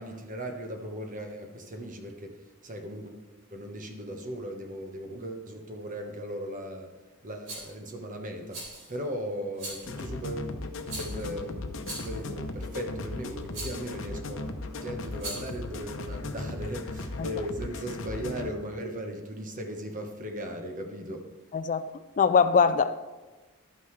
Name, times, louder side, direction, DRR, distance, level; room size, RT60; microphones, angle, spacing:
voice 1, 0.0-3.2 3.5-6.9 7.2-10.6 11.0-14.4 14.8-21.2, equal, 40° right, 1.3 m, -37 dB
Rattle, 7.5-7.7 8.5-9.0 9.6-10.0 10.9-11.3 11.8-12.3 13.5-13.9 15.1-15.6, right 2 dB, 65° right, 3.7 m, -39 dB
sound 1, 9.8-18.5, left 2 dB, 65° left, 0.8 m, -37 dB
voice 2, 21.5-21.9 22.2-23.0, left 5 dB, 40° left, 0.3 m, -22 dB
11.5 x 9.2 x 3.3 m
head